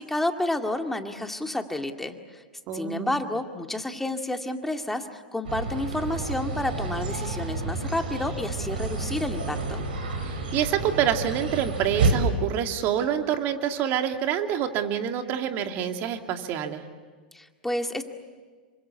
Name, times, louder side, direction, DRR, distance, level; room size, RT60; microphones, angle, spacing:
voice 1, 0.0-2.4 2.7-9.8 17.3-18.0, left 1 dB, 5° left, 5 dB, 2.1 m, -30 dB
voice 2, 2.7-3.2 10.2-16.8, right 9 dB, 45° right, 5 dB, 2.6 m, -27 dB
sound 1, 5.4-12.1, right 3 dB, 80° right, 6.0 m, -30 dB
27.0 x 25.0 x 8.3 m, 1.5 s
hypercardioid pair, 110°, 5 cm